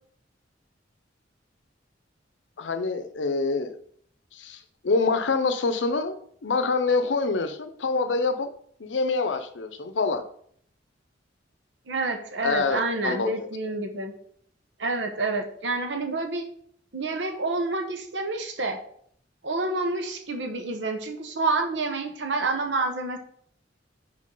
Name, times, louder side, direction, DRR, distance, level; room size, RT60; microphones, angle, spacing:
voice 1, 2.6-3.8 4.3-6.2 6.4-8.5 8.8-10.2 12.4-13.5, left 3 dB, 80° left, 9 dB, 0.6 m, -26 dB
voice 2, 11.9-14.1 14.8-16.4 16.9-18.8 19.4-23.2, right 3 dB, 75° right, 5 dB, 1.0 m, -28 dB
5.3 x 4.5 x 5.4 m, 0.64 s
head